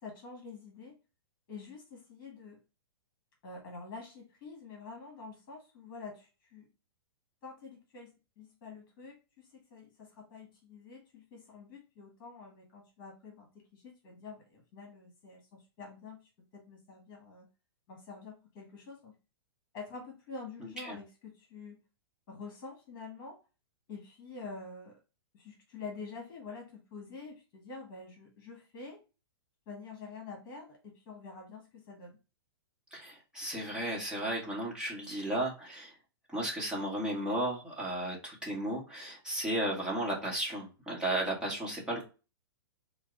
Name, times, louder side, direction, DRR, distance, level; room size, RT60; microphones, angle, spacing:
voice 1, 0.0-0.9 1.5-2.6 3.4-6.7 7.4-16.2 16.5-17.5 17.9-19.1 19.7-21.8 22.3-23.4 23.9-24.9 25.3-29.0 29.7-32.2, left 4 dB, 35° left, 0 dB, 1.6 m, -47 dB
voice 2, 32.9-36.0 36.3-42.0, right 1 dB, 5° right, -4 dB, 1.4 m, -34 dB
4.6 x 2.2 x 3.8 m, 0.31 s
hypercardioid pair, 145°, 13 cm